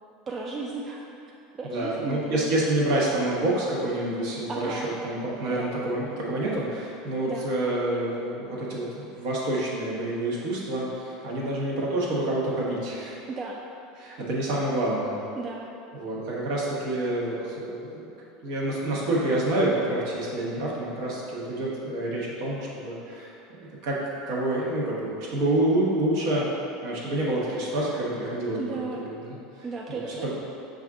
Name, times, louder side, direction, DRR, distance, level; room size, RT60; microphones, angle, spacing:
voice 1, 0.3-1.0 1.6-2.6 4.5-4.9 5.5-5.7 7.2-7.5 13.3-13.6 15.4-15.7 28.6-29.0 29.6-30.3, right 4 dB, 30° right, -2 dB, 0.3 m, -34 dB
voice 2, 1.6-13.2 14.0-15.2 15.9-18.1 18.4-23.4 23.8-24.0 24.3-26.5 26.8-30.3, right 1 dB, 65° right, -4 dB, 1.0 m, -28 dB
5.3 x 2.5 x 3.6 m, 2.7 s
supercardioid pair, 105°, 0 cm